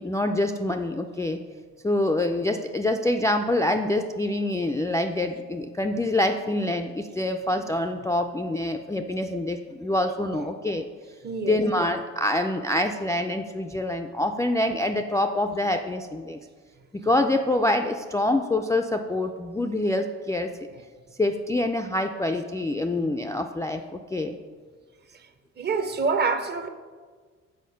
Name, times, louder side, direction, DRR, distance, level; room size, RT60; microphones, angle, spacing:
voice 1, 0.0-1.4 1.8-10.9 11.4-16.4 16.9-20.5 21.2-24.4, left 1 dB, 10° left, 4 dB, 0.3 m, -26 dB
voice 2, 11.2-11.6 25.1-25.3 25.6-26.7, right 4 dB, 35° right, 9 dB, 0.6 m, -27 dB
6.4 x 4.4 x 5.5 m, 1.5 s
cardioid pair, 90°, 30 cm